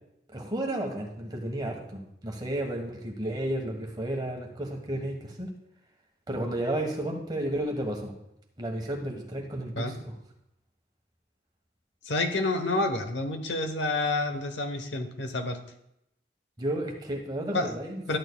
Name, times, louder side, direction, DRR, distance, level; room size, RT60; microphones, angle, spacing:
voice 1, 0.3-5.5 6.3-8.1 8.6-10.1 16.6-18.0, right 1 dB, 25° right, 1 dB, 1.3 m, -32 dB
voice 2, 12.0-15.6 17.5-17.7 18.1-18.2, left 2 dB, 90° left, 7 dB, 1.0 m, -28 dB
12.5 x 9.0 x 2.3 m, 0.79 s
head